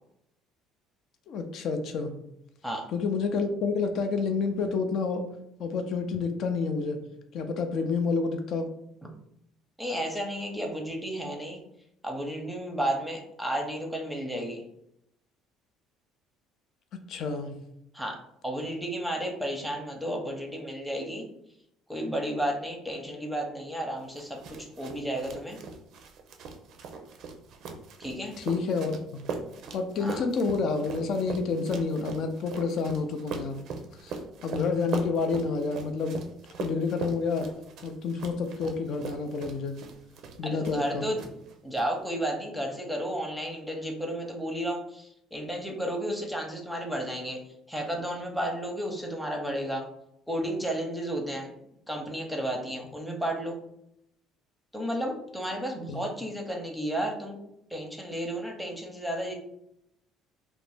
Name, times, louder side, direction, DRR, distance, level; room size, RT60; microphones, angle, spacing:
voice 1, 1.3-2.1 2.9-5.2 5.6-7.0 7.3-8.7 16.9-17.5 28.4-29.2 29.7-33.6 34.0-36.2 36.6-37.5 37.8-39.8 40.4-41.1 55.9-56.0, left 4 dB, 60° left, 7 dB, 0.4 m, -29 dB
voice 2, 9.8-11.6 12.0-14.6 17.9-18.2 18.4-21.3 21.9-25.6 28.0-28.4 30.0-30.2 40.4-41.2 41.6-47.4 47.7-49.9 50.3-51.5 51.9-53.5 54.7-57.4 57.7-59.3, right 1 dB, ahead, 1 dB, 0.7 m, -32 dB
sound 1, 24.1-40.9 41.2-41.8, right 4 dB, 65° right, 0.4 m, -40 dB
2.5 x 2.0 x 3.3 m, 0.77 s
supercardioid pair, 75°, 0 cm